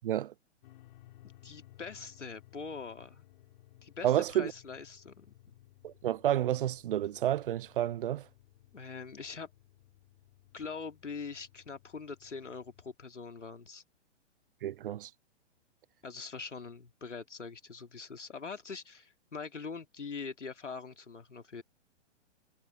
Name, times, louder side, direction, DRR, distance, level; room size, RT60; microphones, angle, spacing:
voice 1, 0.0-0.3 4.0-4.5 5.8-8.3 14.6-15.1, right 12 dB, 50° right, 0.5 m, -30 dB
sound 1, 0.6-12.9, left 15 dB, 45° left, 6.0 m, -59 dB
voice 2, 1.2-3.3 3.8-5.5 8.7-9.5 10.5-13.8 16.0-21.6, left 5 dB, 85° left, 2.7 m, -43 dB
figure-of-eight pair, 120°, 35 cm